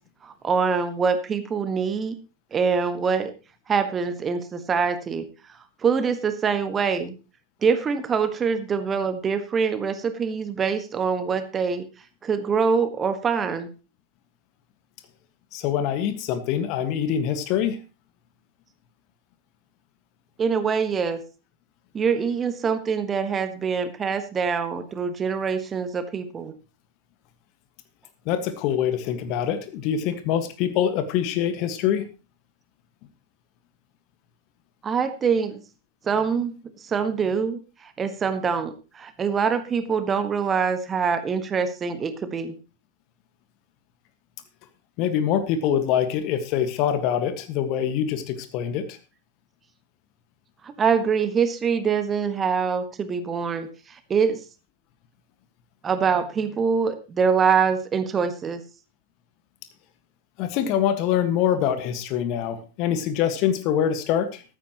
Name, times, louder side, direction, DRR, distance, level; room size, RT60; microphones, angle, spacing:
voice 1, 0.2-2.2 2.5-3.3 3.7-5.3 5.8-7.1 7.6-11.8 12.2-13.7 20.4-21.2 21.9-26.5 34.8-35.6 36.0-36.5 36.8-42.5 50.6-54.4 55.8-58.6, right 6 dB, 20° right, 10 dB, 1.4 m, -24 dB
voice 2, 15.5-17.8 28.2-32.0 45.0-49.0 60.4-64.4, left 9 dB, 40° left, 10 dB, 1.6 m, -24 dB
14.5 x 12.5 x 3.0 m, 0.31 s
figure-of-eight pair, 90°, 0 cm